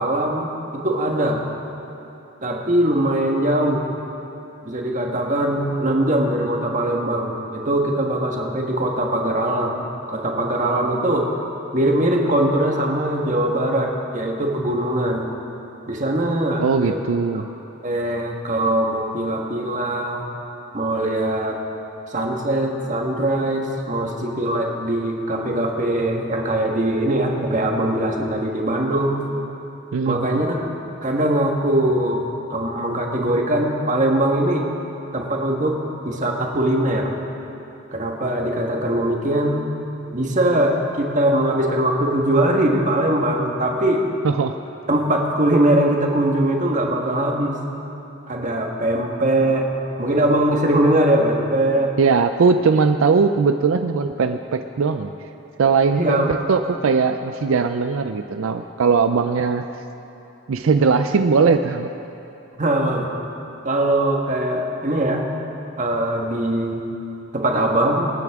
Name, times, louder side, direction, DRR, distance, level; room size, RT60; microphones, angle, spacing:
voice 1, 0.0-1.4 2.4-3.9 4.6-11.3 11.7-15.3 15.9-17.0 17.8-20.2 20.7-21.6 22.1-29.3 30.0-30.6 31.0-34.7 35.1-35.8 36.0-37.1 37.9-39.6 40.1-44.0 44.9-47.6 48.3-49.7 50.0-51.9 55.9-56.3 62.6-63.1 63.6-65.3 65.8-66.8 67.3-68.1, right 1 dB, 40° right, 1 dB, 1.5 m, -21 dB
voice 2, 16.6-17.4 29.9-30.4 44.2-44.6 52.0-55.1 55.6-59.7 60.5-61.9, right 5 dB, 80° right, 8 dB, 0.4 m, -19 dB
25.5 x 9.5 x 3.6 m, 3.0 s
head